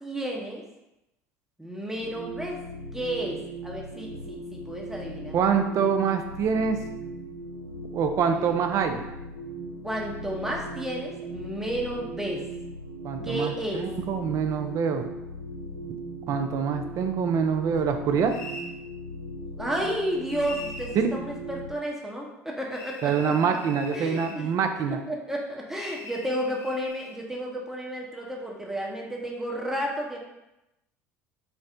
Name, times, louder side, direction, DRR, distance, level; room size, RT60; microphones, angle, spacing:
voice 1, 0.0-0.6 1.6-2.6 2.9-5.4 8.3-8.6 9.8-12.4 13.2-13.8 19.6-23.1 23.9-24.5 24.9-30.2, equal, 5° right, -1 dB, 0.7 m, -32 dB
sound 1, 2.0-21.7, right 1 dB, 90° right, 0.9 m, -39 dB
voice 2, 5.3-6.8 7.9-9.0 13.0-15.1 16.3-18.3 23.0-25.0, right 6 dB, 40° right, 6 dB, 0.3 m, -25 dB
sound 2, 18.3-18.7 20.4-21.0 22.7-24.4 25.7-27.1, left 3 dB, 60° left, 0.5 m, -42 dB
4.2 x 2.0 x 2.6 m, 0.92 s
figure-of-eight pair, 65°, 8 cm